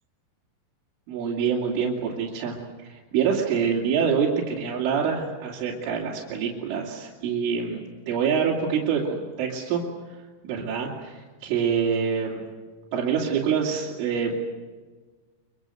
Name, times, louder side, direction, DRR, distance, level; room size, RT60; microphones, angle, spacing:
voice 1, 1.1-2.6 2.8-7.8 8.1-9.8 10.4-12.4 12.9-14.4, right 6 dB, 85° right, -3 dB, 5.2 m, -26 dB
26.0 x 24.0 x 7.9 m, 1.4 s
omnidirectional pair, 5.5 m